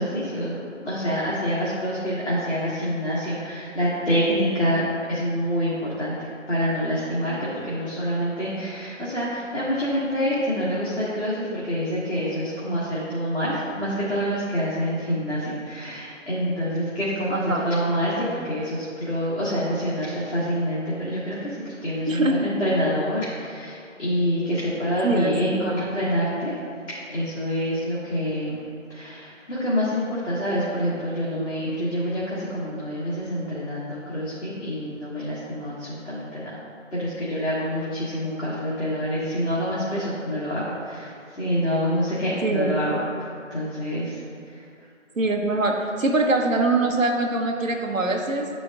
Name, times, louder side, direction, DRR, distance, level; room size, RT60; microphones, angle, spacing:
voice 1, 0.0-6.1 6.5-7.4 7.6-21.6 21.8-26.5 26.9-28.6 28.9-36.6 36.9-43.0 43.5-44.2, equal, 55° left, -9 dB, 1.6 m, -26 dB
voice 2, 17.3-17.6 22.1-22.5 25.0-25.8 42.4-42.7 45.2-48.5, right 2 dB, 80° right, 1 dB, 0.9 m, -23 dB
10.0 x 5.0 x 2.4 m, 2.3 s
figure-of-eight pair, 175°, 39 cm